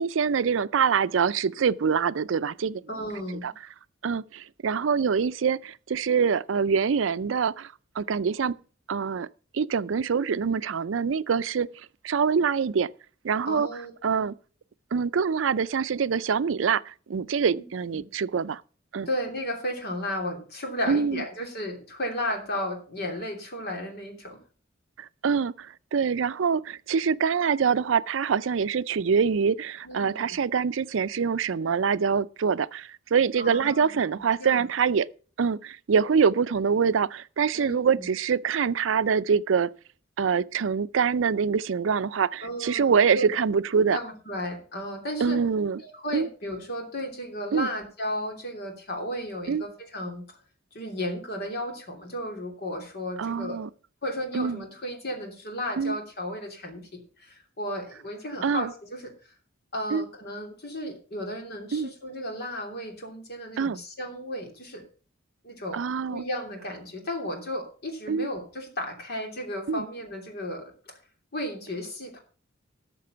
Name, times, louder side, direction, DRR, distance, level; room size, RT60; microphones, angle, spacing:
voice 1, 0.0-2.8 3.4-3.5 4.0-8.6 8.9-9.3 9.5-12.9 13.2-13.7 14.0-14.3 14.9-18.6 18.9-19.1 20.9-21.2 25.0-35.1 35.4-39.7 40.2-44.0 45.2-45.8 46.1-46.3 47.5-47.7 49.5-49.6 53.2-53.7 54.3-54.6 55.8-56.0 58.4-58.7 59.9-60.1 61.7-61.9 63.6-63.8 65.7-66.2 68.1-68.3 69.7-69.9, right 6 dB, 75° right, 0.4 m, -25 dB
voice 2, 2.9-3.5 13.4-14.3 17.9-18.0 19.1-24.4 29.8-30.3 33.4-33.9 34.4-34.7 37.5-38.1 42.4-43.3 43.9-45.4 45.8-50.2 50.7-53.6 54.0-59.1 59.7-64.8 65.4-65.8 66.1-70.7 71.3-72.2, equal, 55° left, 3.0 m, -34 dB
13.0 x 6.8 x 5.6 m
head